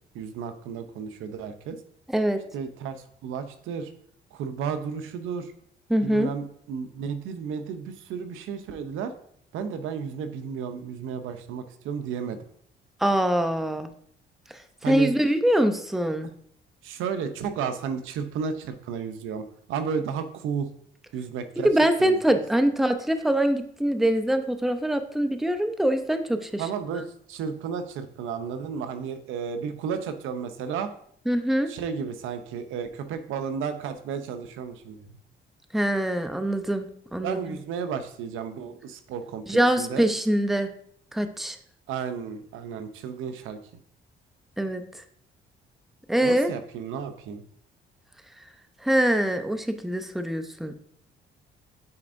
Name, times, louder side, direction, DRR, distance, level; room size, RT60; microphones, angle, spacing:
voice 1, 0.1-1.8 2.5-3.9 4.3-5.5 6.0-9.1 9.5-12.4 14.8-15.1 16.8-19.4 19.7-20.7 21.1-21.7 22.0-22.4 26.6-30.9 31.7-35.2 37.2-40.0 41.9-43.6 46.2-47.4, right 6 dB, 90° right, 9 dB, 0.7 m, -33 dB
voice 2, 5.9-6.3 13.0-13.9 14.9-16.3 21.6-26.6 26.9-27.0 31.3-31.7 35.7-37.4 39.5-40.7 41.1-41.6 44.6-44.8 46.1-46.5 48.8-50.7, right 1 dB, ahead, 8 dB, 0.6 m, -24 dB
9.6 x 4.2 x 2.6 m, 0.63 s
cardioid pair, 90°, 20 cm